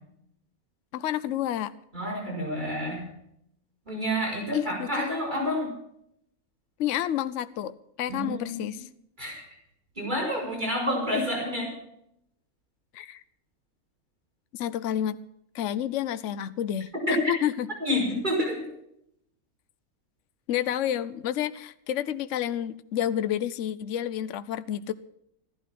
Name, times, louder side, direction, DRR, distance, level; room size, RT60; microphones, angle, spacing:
voice 1, 0.9-1.7 4.5-5.2 6.8-8.9 12.9-13.2 14.5-15.2 15.5-17.7 20.5-24.9, left 10 dB, 60° left, 13 dB, 1.0 m, -30 dB
voice 2, 1.9-3.1 3.9-5.7 8.1-8.7 9.2-9.5 10.0-11.7 17.1-17.2 17.8-18.7, equal, 30° right, -2 dB, 5.3 m, -29 dB
14.5 x 11.5 x 6.0 m, 0.75 s
omnidirectional pair, 1.6 m